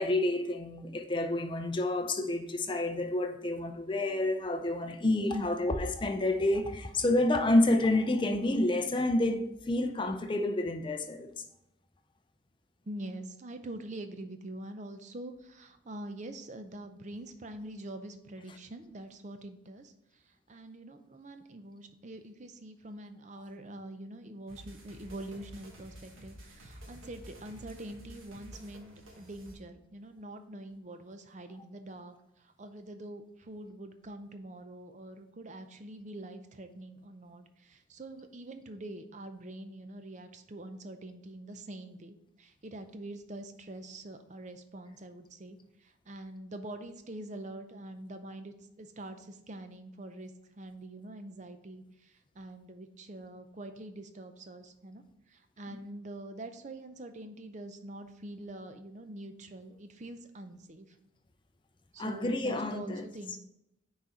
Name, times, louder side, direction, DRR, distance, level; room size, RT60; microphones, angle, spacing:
voice 1, 0.0-11.4 18.5-18.6 23.3-23.4 55.7-55.8 62.0-63.4, left 1 dB, 25° left, 0.5 m, -29 dB
voice 2, 12.8-61.0 61.9-63.4, right 1 dB, 35° right, 0.5 m, -45 dB
sound 1, 24.5-29.5, right 1 dB, 85° right, 1.4 m, -51 dB
6.1 x 4.1 x 4.3 m
head